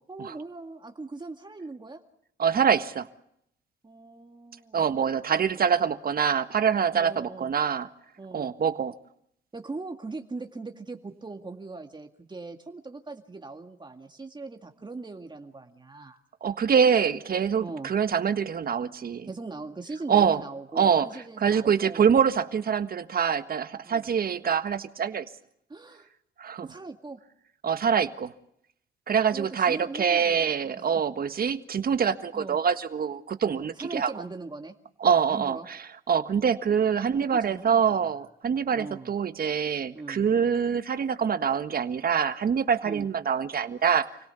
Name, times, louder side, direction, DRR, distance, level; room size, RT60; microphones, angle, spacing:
voice 1, 0.1-2.0 3.8-4.9 6.9-7.5 8.2-8.5 9.5-16.2 17.6-17.9 19.3-22.1 23.8-24.1 25.7-26.1 26.6-27.2 29.3-30.9 32.3-32.6 33.4-34.7 35.3-35.7 36.6-36.8 37.1-38.0 38.7-39.1 39.9-40.3 42.8-43.1, right 3 dB, 20° right, 5 dB, 2.1 m, -40 dB
voice 2, 2.4-3.1 4.7-7.9 8.3-8.9 16.4-19.3 20.1-20.4 20.7-21.1 21.4-25.2 26.4-26.7 27.6-28.3 29.1-34.1 35.0-35.8 36.1-44.1, right 7 dB, 50° right, 10 dB, 1.6 m, -25 dB
28.5 x 17.5 x 7.0 m, 0.75 s
cardioid pair, 90°, 20 cm